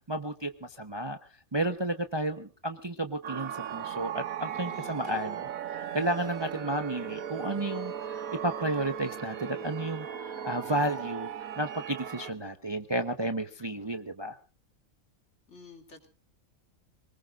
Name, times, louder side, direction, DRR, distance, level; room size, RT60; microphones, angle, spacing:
voice 1, 0.1-1.2 1.5-11.3 11.6-14.4, right 1 dB, 25° right, 8 dB, 0.8 m, -32 dB
sound 1, 3.2-12.3, right 9 dB, 90° right, 1.4 m, -37 dB
voice 2, 4.7-5.3 15.5-16.1, left 4 dB, 60° left, 4 dB, 3.1 m, -49 dB
26.5 x 19.5 x 2.5 m, 0.35 s
omnidirectional pair, 1.4 m